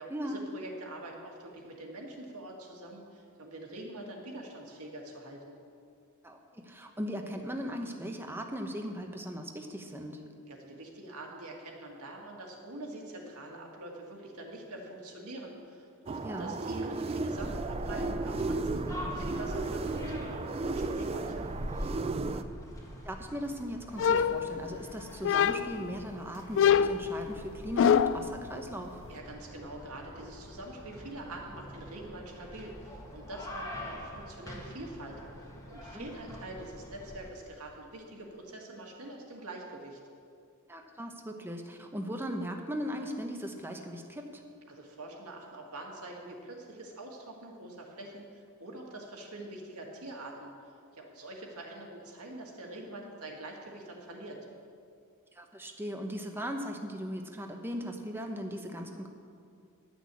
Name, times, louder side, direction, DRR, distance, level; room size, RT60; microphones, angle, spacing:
voice 1, 0.0-5.6 10.5-18.8 19.1-21.5 29.1-35.2 35.7-40.0 44.7-50.5 50.9-54.4, right 1 dB, 75° right, 0 dB, 2.0 m, -45 dB
voice 2, 6.2-10.2 16.2-16.6 22.3-22.4 23.0-29.0 35.9-36.1 40.7-44.4 55.4-59.1, equal, 10° right, 3 dB, 0.9 m, -38 dB
sound 1, 16.1-22.4, right 3 dB, 25° right, 0.3 m, -34 dB
sound 2, 17.4-37.3, equal, 15° left, 1.5 m, -43 dB
sound 3, 24.0-24.8 25.2-25.9 26.6-28.3, left 8 dB, 55° left, 0.3 m, -25 dB
11.5 x 6.2 x 8.3 m, 2.4 s
head